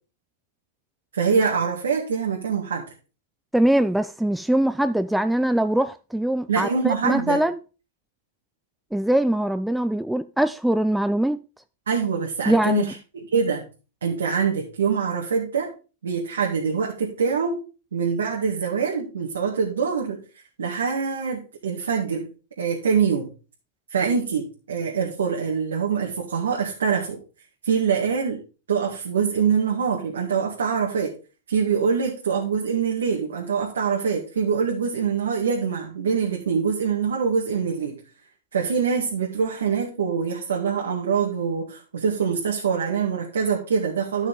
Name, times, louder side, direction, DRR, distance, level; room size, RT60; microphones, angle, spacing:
voice 1, 1.1-2.8 6.5-7.4 11.9-13.6 14.0-15.7 16.0-17.6 17.9-20.2 20.6-22.3 22.6-23.3 23.9-27.2 27.6-28.4 28.7-31.1 31.5-38.0 38.5-44.3, right 6 dB, 80° right, 1.9 m, -24 dB
voice 2, 3.5-7.6 8.9-11.4 12.5-12.9, right 1 dB, 5° right, 0.3 m, -22 dB
11.5 x 6.0 x 3.7 m
hypercardioid pair, 110°, 0 cm